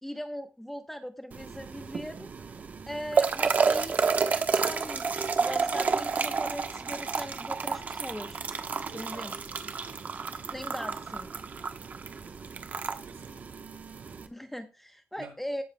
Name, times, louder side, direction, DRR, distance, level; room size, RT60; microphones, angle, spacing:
voice 1, 0.0-2.3 2.9-8.4 8.9-9.3 10.5-11.3 14.3-15.6, equal, 5° left, 1.0 m, -40 dB
sound 1, 1.3-14.3, right 5 dB, 45° right, 1.0 m, -30 dB
voice 2, 8.8-9.4 9.6-10.1 12.2-13.5 15.2-15.3, right 6 dB, 70° right, 6.9 m, -51 dB
18.5 x 7.2 x 2.2 m
wide cardioid pair, 120°, 4 cm